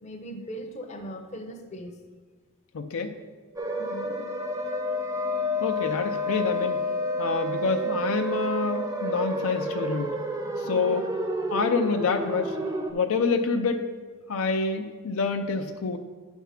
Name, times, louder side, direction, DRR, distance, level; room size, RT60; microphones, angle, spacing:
voice 1, 0.0-2.0 3.8-4.3 5.9-6.0 10.6-11.0, equal, 30° left, 4 dB, 0.7 m, -40 dB
voice 2, 2.7-3.2 5.6-6.8 7.2-10.1 10.6-11.0 11.5-12.5 12.9-13.9 14.3-16.0, left 4 dB, 70° left, 6 dB, 0.5 m, -27 dB
sound 1, 3.6-12.9, equal, 15° right, 0.6 m, -30 dB
10.0 x 3.5 x 5.7 m, 1.4 s
head